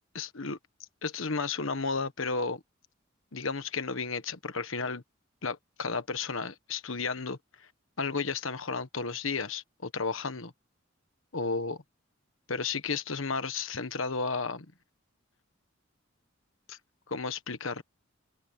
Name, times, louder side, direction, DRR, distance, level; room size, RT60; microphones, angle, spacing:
voice 1, 0.1-0.6 1.0-2.6 3.3-5.0 5.4-7.7 8.0-10.5 11.3-11.8 12.5-14.6 16.7-16.8 17.1-17.8, left 4 dB, 80° left, 1.3 m, -33 dB
head